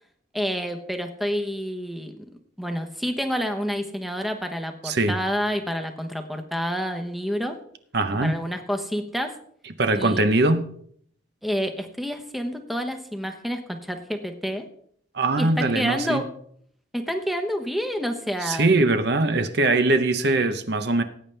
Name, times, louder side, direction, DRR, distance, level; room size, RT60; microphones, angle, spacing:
voice 1, 0.3-2.2 2.6-7.6 8.2-9.4 9.9-10.2 11.4-14.7 15.4-16.3 16.9-18.7, equal, ahead, 5 dB, 0.9 m, -28 dB
voice 2, 4.8-5.2 7.9-8.4 9.8-10.6 15.1-16.2 18.4-21.0, right 2 dB, 55° right, 8 dB, 0.8 m, -21 dB
19.0 x 9.0 x 3.3 m, 0.63 s
head